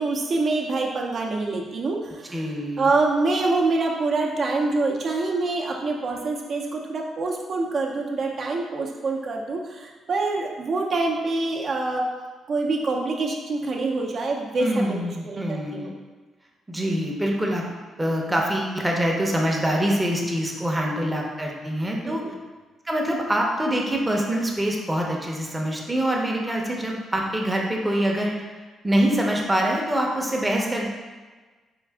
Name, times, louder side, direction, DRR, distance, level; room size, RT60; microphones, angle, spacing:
voice 1, 0.0-2.4 2.8-12.0 12.5-15.0 15.2-15.9 22.0-22.3, right 3 dB, 50° right, 0 dB, 0.6 m, -25 dB
voice 2, 2.3-2.9 14.6-16.0 16.7-17.6 18.0-22.2 22.8-28.3 28.8-30.9, right 1 dB, 10° right, -1 dB, 0.7 m, -25 dB
4.6 x 2.4 x 3.4 m, 1.3 s
cardioid pair, 90°, 0 cm